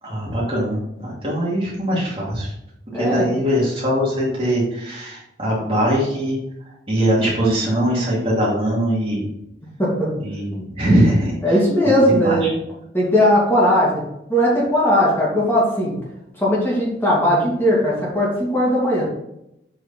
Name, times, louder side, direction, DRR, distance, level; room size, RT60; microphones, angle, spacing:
voice 1, 0.0-2.5 2.9-6.4 6.9-9.3 10.2-11.6 12.1-12.5, equal, 30° right, -6 dB, 2.8 m, -21 dB
voice 2, 2.9-3.2 9.8-10.1 11.4-12.5 12.9-14.0 14.3-15.9 16.4-19.0, equal, 10° left, -6 dB, 2.6 m, -18 dB
7.8 x 4.9 x 4.3 m, 0.82 s
head